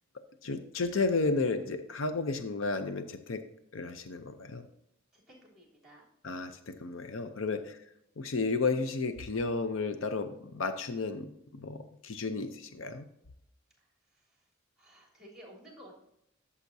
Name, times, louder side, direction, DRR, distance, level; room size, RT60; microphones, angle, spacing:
voice 1, 0.4-3.4 3.7-4.6 6.2-7.8 8.2-13.0, left 3 dB, 75° left, 9 dB, 0.7 m, -33 dB
voice 2, 5.1-6.0 7.4-7.7 13.8-14.4 14.8-16.0, equal, 5° right, -3 dB, 3.3 m, -55 dB
13.0 x 7.1 x 2.7 m, 0.79 s
head